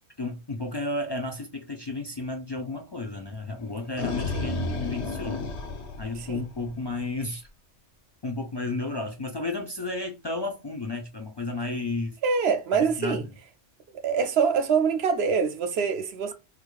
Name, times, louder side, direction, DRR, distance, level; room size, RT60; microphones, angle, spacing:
voice 1, 0.2-5.4 6.0-7.5 8.2-12.2 12.7-13.2, left 2 dB, 45° left, 0.3 m, -32 dB
sound 1, 3.6-6.9, left 3 dB, 80° left, 1.0 m, -32 dB
voice 2, 12.2-13.2 14.0-16.3, right 6 dB, 70° right, 0.8 m, -25 dB
4.5 x 2.4 x 2.3 m
omnidirectional pair, 1.1 m